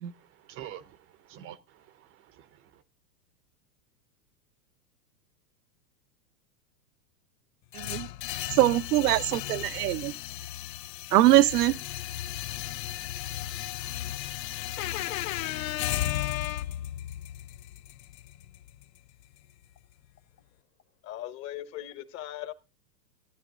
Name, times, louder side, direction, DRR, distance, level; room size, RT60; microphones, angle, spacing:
voice 1, 0.0-2.8, right 11 dB, 25° right, 0.7 m, -48 dB
sound 1, 7.7-19.8, left 13 dB, 80° left, 0.7 m, -36 dB
voice 2, 7.7-8.1 8.6-10.1 11.1-11.7, right 15 dB, 70° right, 0.8 m, -22 dB
voice 3, 14.8-16.8, left 15 dB, 55° left, 1.0 m, -34 dB
voice 4, 21.0-22.5, left 13 dB, 30° left, 1.1 m, -39 dB
15.5 x 9.6 x 3.8 m
hypercardioid pair, 135°, 49 cm